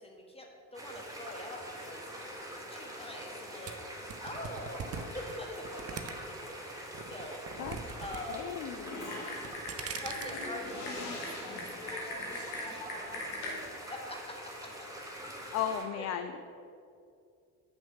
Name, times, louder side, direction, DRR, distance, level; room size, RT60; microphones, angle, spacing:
voice 1, 0.0-2.1 2.7-3.7 4.2-6.6 7.1-7.4 8.0-8.5 10.0-14.7 15.9-16.1, left 1 dB, 10° left, 1 dB, 1.5 m, -44 dB
sound 1, 0.7-15.8, equal, 5° right, 2.0 m, -44 dB
sound 2, 3.7-6.5 6.9-8.2 8.5-8.9 9.3-10.4, right 7 dB, 30° right, 0.7 m, -41 dB
voice 2, 8.3-9.0 15.5-16.4, left 9 dB, 40° left, 8 dB, 0.4 m, -35 dB
Typing, 8.8-13.5, left 2 dB, 60° left, 1.6 m, -40 dB
6.4 x 6.1 x 5.7 m, 2.4 s
figure-of-eight pair, 50°, 47 cm